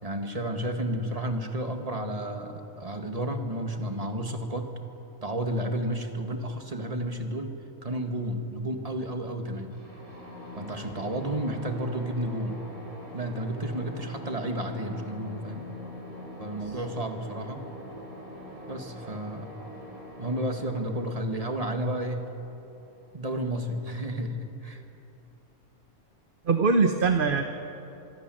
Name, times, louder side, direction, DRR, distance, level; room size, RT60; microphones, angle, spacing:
voice 1, 0.0-4.7 5.2-7.6 7.8-9.7 10.6-12.6 13.1-15.7 16.4-17.7 18.7-19.5 20.2-22.3 23.1-24.8, right 1 dB, 25° right, 4 dB, 2.1 m, -32 dB
sound 1, 9.7-23.4, equal, 70° right, 6.4 m, -44 dB
voice 2, 26.4-27.4, right 4 dB, 40° right, 6 dB, 1.2 m, -22 dB
26.0 x 22.5 x 7.9 m, 2.8 s
omnidirectional pair, 1.5 m